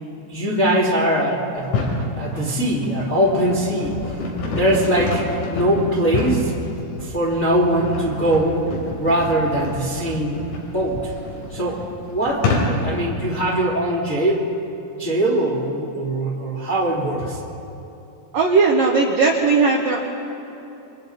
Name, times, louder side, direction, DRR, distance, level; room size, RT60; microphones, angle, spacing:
voice 1, 0.3-1.7 2.1-3.9 4.4-6.5 7.0-8.6 9.0-10.3 10.7-11.0 11.5-14.5 15.0-17.4, right 1 dB, 30° left, -4 dB, 1.5 m, -21 dB
sound 1, 1.6-2.1 2.7-13.0, left 3 dB, 75° left, 6.0 m, -28 dB
voice 2, 18.3-20.0, right 4 dB, 90° right, 0 dB, 1.9 m, -18 dB
29.0 x 24.5 x 4.2 m, 3.0 s
omnidirectional pair, 5.9 m